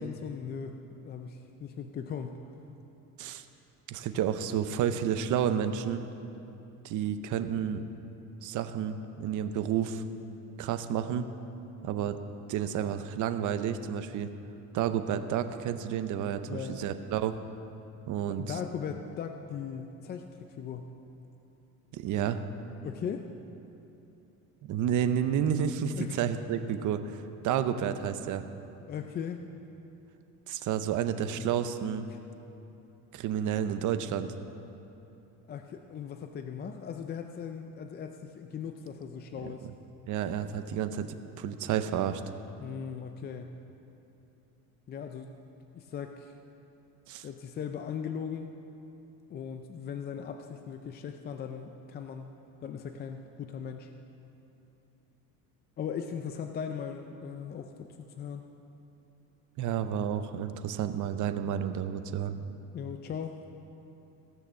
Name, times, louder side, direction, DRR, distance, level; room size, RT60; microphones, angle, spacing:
voice 1, 0.0-2.4 16.4-16.8 18.3-20.9 22.8-23.3 25.9-26.2 28.9-29.4 32.1-32.2 35.5-39.7 42.6-43.5 44.9-45.3 45.7-46.3 47.2-48.5 49.3-52.3 52.6-53.9 55.8-58.5 62.2-62.4 62.7-63.4, left 7 dB, 30° left, 5 dB, 0.4 m, -38 dB
voice 2, 3.9-6.0 6.8-7.8 8.4-10.0 10.6-11.3 11.8-12.2 12.5-14.3 14.7-17.4 18.1-18.6 21.9-22.4 24.6-28.4 30.5-32.1 33.1-34.3 39.4-39.5 40.1-42.2 47.1-47.3 59.6-62.4, right 9 dB, 55° right, 10 dB, 0.7 m, -30 dB
17.0 x 6.4 x 6.9 m, 2.9 s
cardioid pair, 160°, 36 cm